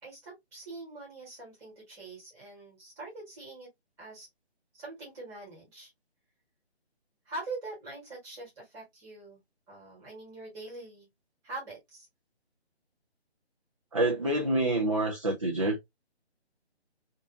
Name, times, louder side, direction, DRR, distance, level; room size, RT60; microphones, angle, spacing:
voice 1, 0.0-3.7 4.0-4.3 4.8-5.9 7.2-9.4 9.7-11.1 11.4-12.1, right 2 dB, 10° right, 1.4 m, -43 dB
voice 2, 13.9-15.8, right 2 dB, 30° right, 0.5 m, -27 dB
3.7 x 2.5 x 2.7 m
figure-of-eight pair, 160°, 33 cm